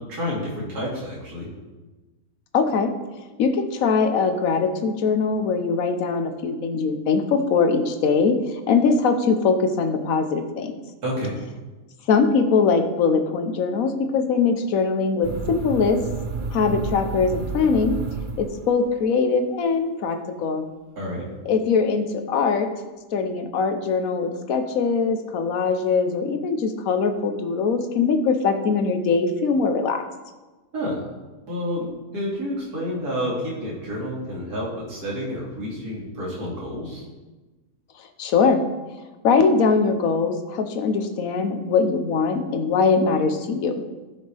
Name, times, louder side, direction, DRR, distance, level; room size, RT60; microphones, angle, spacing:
voice 1, 0.0-1.5 11.0-11.4 21.0-21.2 30.7-31.1 31.5-31.9 32.1-37.0, equal, 65° right, -6 dB, 3.1 m, -29 dB
voice 2, 2.5-2.9 3.4-8.4 8.7-10.8 12.1-16.0 16.5-18.0 18.4-20.7 21.5-22.7 23.1-30.0 38.2-38.6 39.2-43.7, left 5 dB, 60° left, 7 dB, 1.3 m, -21 dB
sound 1, 15.2-19.0, right 3 dB, 45° right, 0.7 m, -31 dB
15.0 x 6.4 x 3.4 m, 1.2 s
omnidirectional pair, 1.7 m